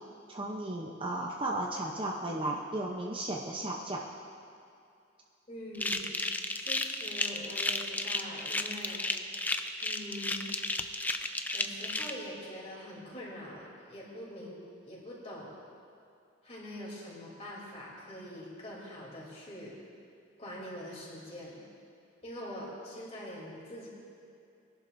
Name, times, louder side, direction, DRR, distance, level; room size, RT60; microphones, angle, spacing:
voice 1, 0.3-4.0, right 1 dB, 25° right, -1 dB, 0.7 m, -34 dB
voice 2, 5.5-6.1 6.6-9.1 9.8-10.5 11.5-14.6 14.9-15.6 16.4-19.7 20.4-21.6 22.2-23.9, equal, 30° left, -5 dB, 3.2 m, -44 dB
sound 1, 5.8-12.1, left 2 dB, 10° left, 0.3 m, -33 dB
21.0 x 11.5 x 2.6 m, 2.5 s
head